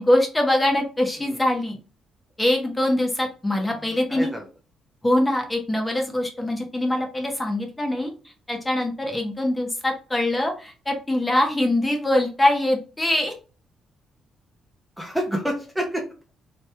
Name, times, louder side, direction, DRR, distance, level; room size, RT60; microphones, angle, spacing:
voice 1, 0.0-1.8 2.4-4.3 5.0-8.1 8.5-13.3, left 1 dB, 15° left, 2 dB, 1.2 m, -23 dB
voice 2, 1.2-1.5 3.8-4.5 15.0-16.3, equal, 5° right, 0 dB, 0.9 m, -29 dB
3.2 x 3.0 x 3.3 m, 0.34 s
cardioid pair, 90°, 0 cm